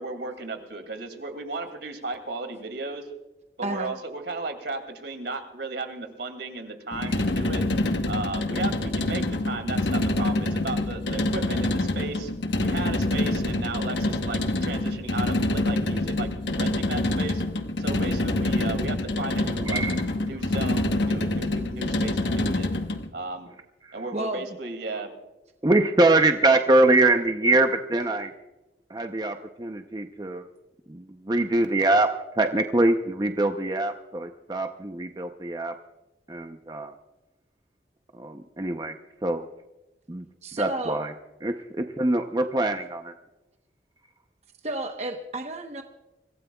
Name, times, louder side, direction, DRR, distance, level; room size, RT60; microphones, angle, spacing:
voice 1, 0.0-3.1 3.6-7.6 8.1-12.3 12.6-17.4 17.8-19.8 20.3-22.8 23.1-23.5 23.9-25.1, right 3 dB, 80° right, 6 dB, 2.4 m, -35 dB
voice 2, 3.6-4.0 24.1-24.4 40.4-41.0 44.6-45.8, right 2 dB, 40° right, 4 dB, 1.0 m, -31 dB
sound 1, 6.9-23.1, left 1 dB, 85° left, 1.1 m, -26 dB
voice 3, 19.6-20.0 25.6-28.3 28.9-30.4 30.9-32.1 32.4-35.7 36.3-36.9 38.1-38.9 39.2-39.5 40.1-40.2 40.6-41.1 41.4-43.1, right 2 dB, 25° right, 6 dB, 0.6 m, -23 dB
25.5 x 16.0 x 2.3 m, 1.0 s
head